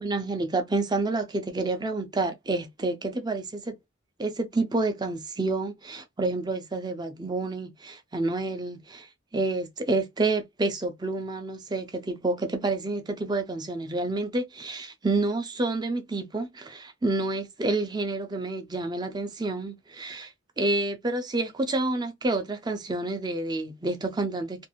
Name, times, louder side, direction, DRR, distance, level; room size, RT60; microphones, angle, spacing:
voice 1, 0.0-3.8 4.2-9.1 9.3-24.7, right 2 dB, 20° right, 0.5 m, -29 dB
2.5 x 2.4 x 2.9 m
head